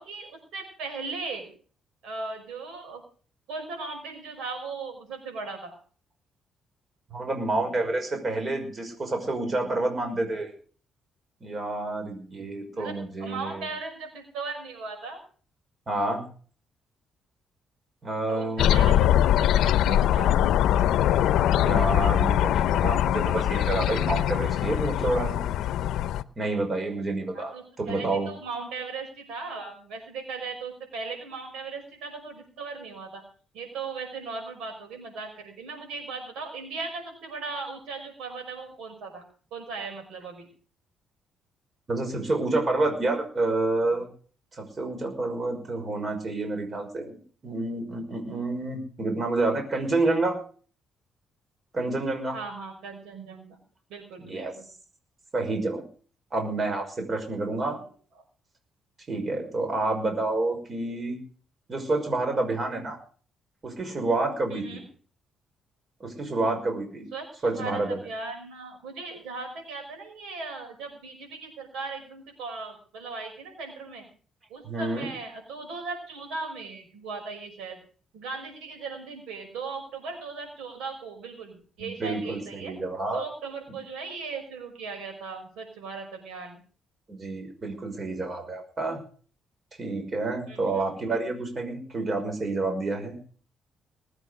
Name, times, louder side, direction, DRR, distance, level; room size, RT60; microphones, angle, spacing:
voice 1, 0.0-1.5 2.0-3.0 3.5-5.7 12.7-15.2 18.3-20.4 27.3-33.2 33.5-39.2 39.5-40.5 52.3-53.6 53.9-54.7 64.5-64.8 67.1-74.0 74.5-77.8 78.1-82.7 83.1-86.6 90.5-90.9, right 4 dB, 90° right, 4 dB, 5.8 m, -38 dB
voice 2, 7.1-10.5 11.4-13.7 15.9-16.2 18.0-18.8 21.5-25.4 26.4-28.3 41.9-44.1 44.5-47.2 47.4-50.4 51.7-52.4 54.2-54.5 55.3-55.8 56.3-57.8 59.1-61.2 61.7-63.0 63.6-64.8 66.0-67.0 67.4-68.0 74.6-75.1 81.8-83.2 87.1-89.0 89.8-93.2, right 2 dB, 40° right, 4 dB, 5.6 m, -29 dB
sound 1, 18.6-26.2, left 11 dB, 80° left, 0.7 m, -22 dB
20.0 x 8.8 x 6.5 m, 0.42 s
cardioid pair, 90°, 0 cm